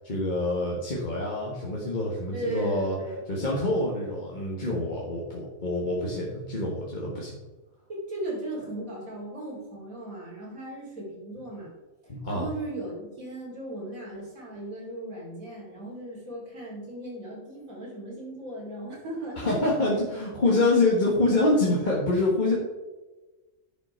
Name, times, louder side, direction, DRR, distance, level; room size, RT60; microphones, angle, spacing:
voice 1, 0.0-3.0 3.3-7.3 12.1-12.4 19.4-22.6, left 2 dB, 35° left, -4 dB, 1.5 m, -26 dB
voice 2, 2.3-3.2 7.9-11.7 12.3-19.7, right 1 dB, 80° right, -5 dB, 3.1 m, -37 dB
10.5 x 6.1 x 4.4 m, 1.2 s
omnidirectional pair, 1.4 m